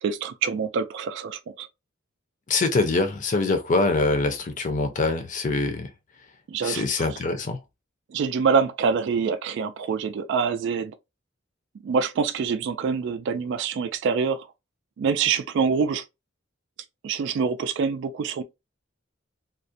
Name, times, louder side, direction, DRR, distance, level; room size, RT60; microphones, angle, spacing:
voice 1, 0.0-1.7 6.5-6.8 8.1-11.0 11.8-14.5 15.0-16.0 17.0-18.4, right 5 dB, 65° right, 0.3 m, -25 dB
voice 2, 2.5-5.9 6.6-7.6, left 3 dB, 40° left, 0.5 m, -24 dB
2.4 x 2.1 x 2.5 m
head